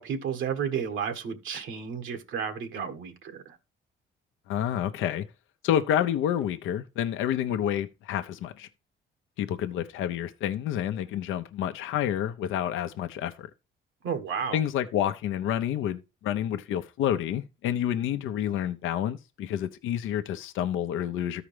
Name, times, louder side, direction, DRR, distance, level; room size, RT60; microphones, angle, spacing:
voice 1, 0.0-3.4 14.0-14.6, right 7 dB, 80° right, 1.5 m, -32 dB
voice 2, 4.5-5.2 5.6-8.7 9.4-13.5 14.5-21.4, left 10 dB, 85° left, 0.7 m, -29 dB
13.5 x 4.9 x 3.3 m
cardioid pair, 90°, 20 cm